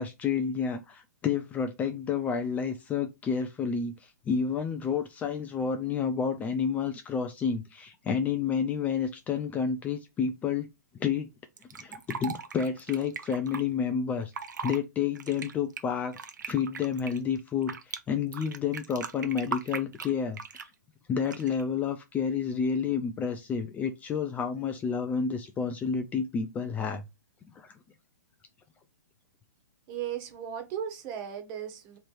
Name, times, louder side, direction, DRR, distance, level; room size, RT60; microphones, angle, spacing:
voice 1, 0.0-10.7 11.0-11.3 11.8-14.3 14.6-16.2 16.5-20.7 21.1-27.0 27.5-27.8, left 6 dB, 15° left, 0.4 m, -30 dB
Fill (with liquid), 11.6-13.6 14.2-14.8 15.1-18.0 18.3-20.7 21.2-21.6, right 6 dB, 80° right, 0.8 m, -38 dB
voice 2, 29.9-32.0, right 9 dB, 35° right, 1.3 m, -36 dB
3.3 x 2.9 x 4.5 m
hypercardioid pair, 135°, 10 cm